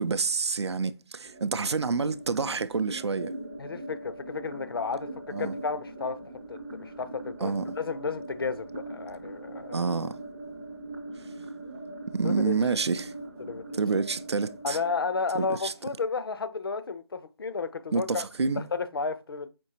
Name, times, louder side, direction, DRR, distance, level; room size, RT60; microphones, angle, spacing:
voice 1, 0.0-3.4 5.3-5.6 7.4-7.7 9.7-10.1 12.1-13.1 13.7-14.8 15.3-15.7 17.9-18.7, right 4 dB, 85° right, 0.4 m, -28 dB
sound 1, 1.2-16.2, right 2 dB, 10° right, 0.4 m, -42 dB
voice 2, 3.6-6.2 6.5-9.8 12.2-12.5 13.4-13.6 14.6-18.2 18.6-19.5, left 4 dB, 60° left, 0.5 m, -32 dB
5.2 x 2.8 x 2.8 m
figure-of-eight pair, 160°, 14 cm